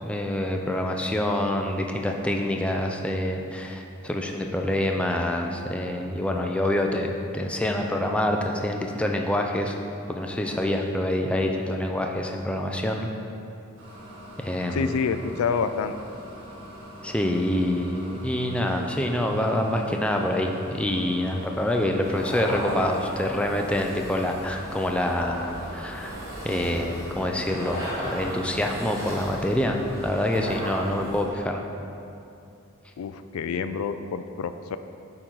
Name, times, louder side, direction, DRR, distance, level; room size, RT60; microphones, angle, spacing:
voice 1, 0.0-9.7 10.1-13.1 14.4-15.0 17.0-26.2 26.4-31.6, left 1 dB, 5° left, 2 dB, 0.4 m, -26 dB
sound 1, 13.8-30.3, equal, 65° right, 1.4 m, -43 dB
voice 2, 14.7-15.9 33.0-34.8, left 5 dB, 85° left, 10 dB, 0.3 m, -28 dB
sound 2, 22.0-31.3, right 1 dB, 15° right, 1.3 m, -36 dB
8.5 x 3.8 x 4.6 m, 2.6 s
head